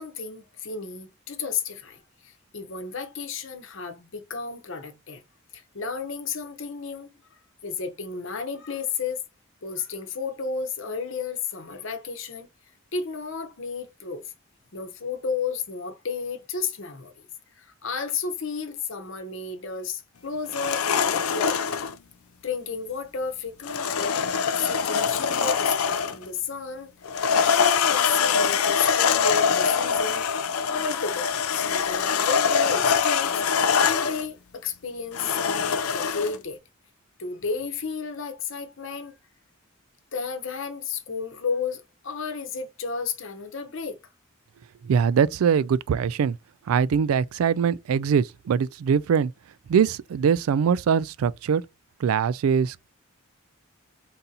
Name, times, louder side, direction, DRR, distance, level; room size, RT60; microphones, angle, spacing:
voice 1, 0.0-5.2 5.5-7.1 7.6-9.2 9.6-12.5 12.9-14.2 14.7-17.2 17.6-21.6 22.4-24.1 24.6-26.9 27.5-30.3 30.7-33.4 33.8-36.6 37.2-39.1 40.1-44.0, left 5 dB, 65° left, 0.8 m, -32 dB
sound 1, 20.5-21.9 23.6-26.2 27.1-34.3 35.1-36.4, left 6 dB, 85° left, 0.5 m, -24 dB
voice 2, 44.8-46.4 46.7-49.3 49.7-51.6 52.0-52.9, right 7 dB, 80° right, 0.3 m, -22 dB
3.9 x 2.8 x 3.8 m
head